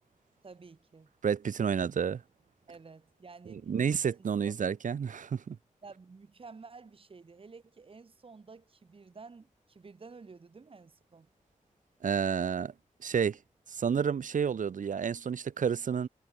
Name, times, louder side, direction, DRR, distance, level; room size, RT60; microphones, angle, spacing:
voice 1, 0.4-1.1 2.7-3.7 4.2-4.6 5.8-11.3, right 4 dB, 45° right, 2.6 m, -51 dB
voice 2, 1.2-2.2 3.7-5.6 12.0-12.7 13.0-13.4 13.7-16.1, right 7 dB, 75° right, 1.0 m, -30 dB
wide cardioid pair, 145°, 13 cm